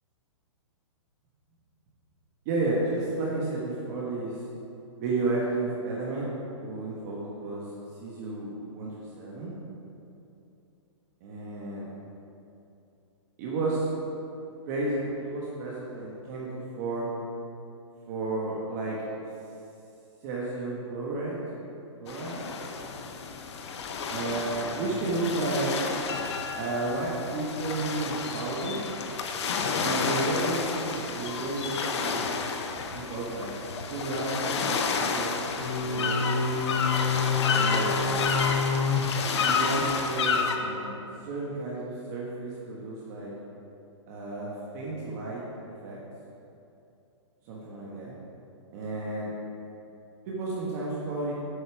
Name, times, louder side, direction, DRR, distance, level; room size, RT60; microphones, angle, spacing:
voice 1, 2.4-4.4 5.0-6.3 6.6-7.7 8.0-9.5 11.2-11.9 13.4-13.9 14.7-17.1 18.1-19.0 20.2-21.4 22.0-22.4 24.1-25.8 26.5-28.8 29.8-32.3 32.9-33.5 33.9-35.4 35.8-36.2 37.5-38.1 39.4-43.3 44.1-45.4 45.8-46.0 47.4-48.1 48.7-49.3 50.3-51.3, right 2 dB, 35° right, -5 dB, 1.2 m, -32 dB
sound 1, 22.1-40.6, left 5 dB, 65° left, 0.8 m, -29 dB
8.0 x 5.2 x 6.0 m, 2.7 s
hypercardioid pair, 160°, 16 cm